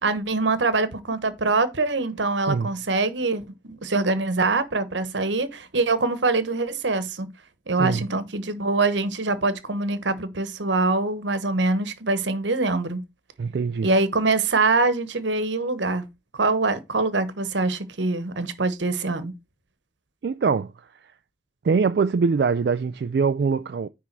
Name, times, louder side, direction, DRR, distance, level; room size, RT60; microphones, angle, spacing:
voice 1, 0.0-7.3 7.7-13.0 13.8-16.1 16.3-19.3, right 3 dB, 80° right, 1.1 m, -24 dB
voice 2, 13.4-13.9 20.2-20.7 21.6-23.9, right 5 dB, 60° right, 0.3 m, -23 dB
9.9 x 3.6 x 4.6 m
head